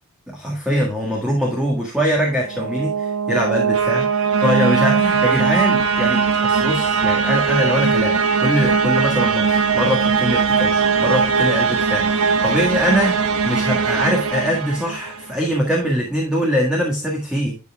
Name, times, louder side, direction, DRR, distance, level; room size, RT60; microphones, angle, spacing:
voice 1, 0.3-4.1 4.4-17.6, equal, 5° right, -2 dB, 1.7 m, -22 dB
sound 1, 2.3-15.3, right 5 dB, 80° right, 1.0 m, -19 dB
11.0 x 5.5 x 2.3 m, 0.34 s
head